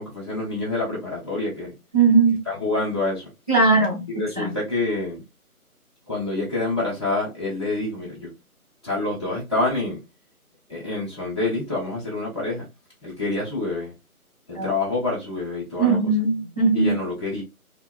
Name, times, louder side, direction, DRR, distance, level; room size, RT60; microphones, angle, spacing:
voice 1, 0.0-1.7 2.4-3.3 4.1-5.2 6.1-8.3 8.8-10.0 10.7-12.7 13.0-13.9 14.5-16.1 16.7-17.4, left 2 dB, 20° left, 1.3 m, -27 dB
voice 2, 1.9-2.4 3.5-4.5 14.5-14.7 15.8-16.9, right 4 dB, 25° right, 1.0 m, -19 dB
3.3 x 2.8 x 2.3 m
figure-of-eight pair, 180°, 45 cm